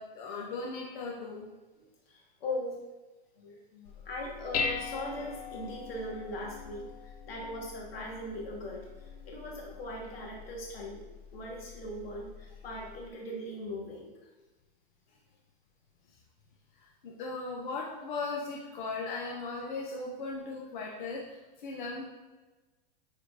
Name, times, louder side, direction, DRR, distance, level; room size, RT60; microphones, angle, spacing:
voice 1, 0.0-1.5 16.8-22.0, left 3 dB, 55° left, -2 dB, 1.4 m, -38 dB
voice 2, 1.8-2.8 3.4-11.0 11.3-14.1 15.1-15.2 20.0-20.1, left 1 dB, 85° left, -2 dB, 2.8 m, -40 dB
Dishes pots and pans, 3.8-13.1, left 5 dB, 40° left, 0.5 m, -41 dB
10.0 x 4.4 x 4.2 m, 1.2 s
supercardioid pair, 170°, 29 cm